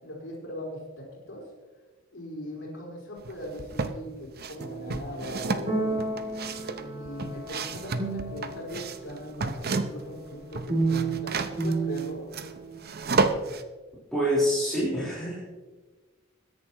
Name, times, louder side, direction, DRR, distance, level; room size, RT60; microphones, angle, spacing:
voice 1, 0.0-1.4 2.1-6.2 6.8-12.2, equal, 65° left, -10 dB, 4.7 m, -40 dB
sound 1, 3.2-4.0 4.4-10.2 10.4-13.6, right 3 dB, 50° right, 0.8 m, -31 dB
sound 2, 4.6-8.9 10.7-12.8, right 3 dB, 35° right, 2.9 m, -31 dB
voice 2, 14.1-15.4, equal, ahead, -10 dB, 4.2 m, -26 dB
22.0 x 10.5 x 3.0 m, 1.3 s
head